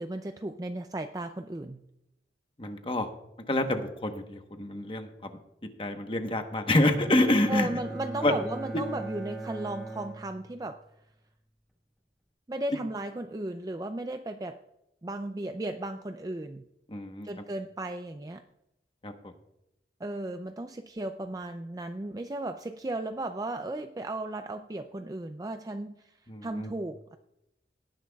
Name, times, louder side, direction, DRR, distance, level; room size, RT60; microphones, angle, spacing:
voice 1, 0.0-1.8 7.5-10.8 12.5-14.6 15.0-16.7 17.2-18.4 20.0-26.1 26.4-27.2, right 2 dB, 20° right, 7 dB, 0.4 m, -35 dB
voice 2, 2.6-3.1 3.5-5.1 5.8-7.8 8.2-8.3 16.9-17.3 19.0-19.1 26.3-26.7, left 1 dB, 30° left, 6 dB, 1.1 m, -27 dB
Bowed string instrument, 6.8-10.9, right 2 dB, ahead, 1.5 m, -39 dB
18.5 x 10.0 x 2.3 m, 0.85 s
head